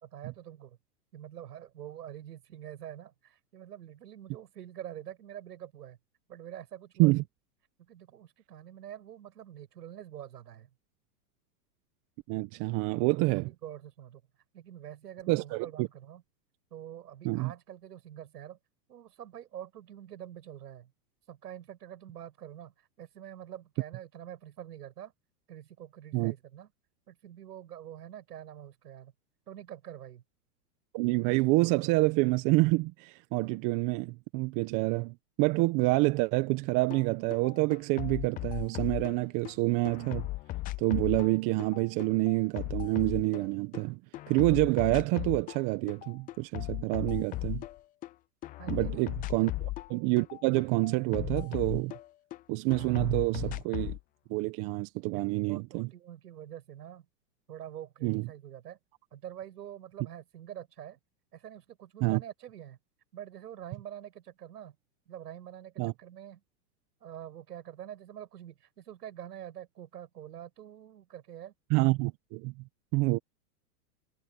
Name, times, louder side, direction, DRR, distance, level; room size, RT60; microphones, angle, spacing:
voice 1, 0.1-0.8 1.1-6.0 6.3-7.2 7.8-10.7 13.0-14.2 14.5-16.2 16.7-18.6 18.9-20.9 21.3-25.1 25.5-26.7 27.1-29.1 29.5-30.2 48.6-48.9 49.4-49.5 55.1-57.1 57.5-58.8 59.1-61.0 61.3-62.8 63.1-64.8 65.1-66.4 67.0-71.5, right 11 dB, 90° right, 7.7 m, -46 dB
voice 2, 12.3-13.5 15.3-15.9 17.2-17.5 26.1-26.3 30.9-40.3 40.8-44.0 44.3-47.6 48.7-51.9 52.5-54.0 54.3-55.9 58.0-58.3 62.0-62.2 65.8-65.9 71.7-72.5 72.9-73.2, right 23 dB, 40° right, 1.4 m, -27 dB
sound 1, 36.9-37.0 37.3-39.5 39.9-43.8 44.1-45.6 45.9-48.1 48.4-52.4 52.7-54.0, left 18 dB, 20° left, 0.5 m, -37 dB
supercardioid pair, 135°, 47 cm